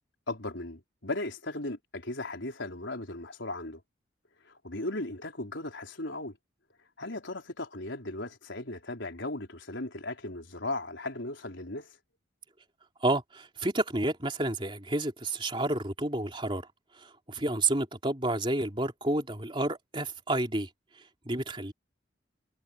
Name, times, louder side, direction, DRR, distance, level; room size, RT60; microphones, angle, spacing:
voice 1, 0.3-3.8 4.5-6.4 7.0-11.9, left 2 dB, 75° left, 4.3 m, -37 dB
voice 2, 13.0-16.7 16.9-20.7 21.0-21.7, right 2 dB, 25° right, 3.4 m, -30 dB
head